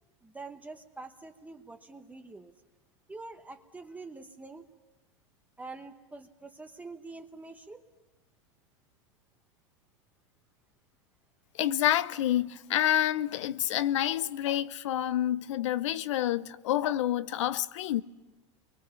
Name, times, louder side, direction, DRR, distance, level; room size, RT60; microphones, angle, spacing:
voice 1, 0.2-2.5 3.1-4.6 5.6-7.8, right 3 dB, 10° right, 1.1 m, -45 dB
voice 2, 11.5-18.0, left 12 dB, 80° left, 0.8 m, -28 dB
30.0 x 23.5 x 5.8 m
supercardioid pair, 125°, 16 cm